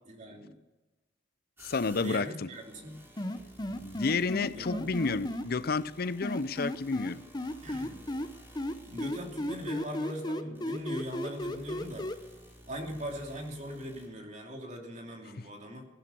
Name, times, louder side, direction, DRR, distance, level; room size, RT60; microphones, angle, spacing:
voice 1, 0.1-0.6 1.9-3.0 4.5-4.8 5.1-5.3 7.6-8.0 8.8-12.1 12.7-15.9, equal, 40° right, 2.8 m, -40 dB
voice 2, 1.6-2.5 3.8-7.2, left 4 dB, 55° left, 0.6 m, -30 dB
sound 1, 1.6-14.1, equal, 10° right, 4.3 m, -54 dB
sound 2, 3.2-5.4 6.2-8.3 8.6-12.1, left 1 dB, 25° left, 0.9 m, -34 dB
16.0 x 12.5 x 6.9 m
head